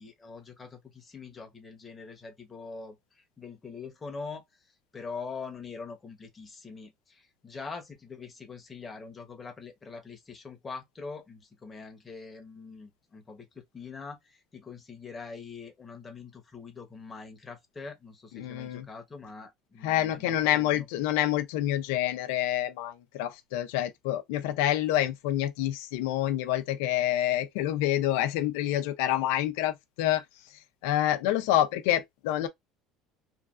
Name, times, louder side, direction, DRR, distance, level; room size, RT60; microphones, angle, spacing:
voice 1, 0.0-3.0 3.4-4.4 4.9-20.9, left 4 dB, 15° left, 0.9 m, -43 dB
voice 2, 18.3-18.8 19.8-30.2 30.8-32.5, left 13 dB, 85° left, 0.5 m, -27 dB
3.1 x 2.4 x 2.4 m
cardioid pair, 150°, 0 cm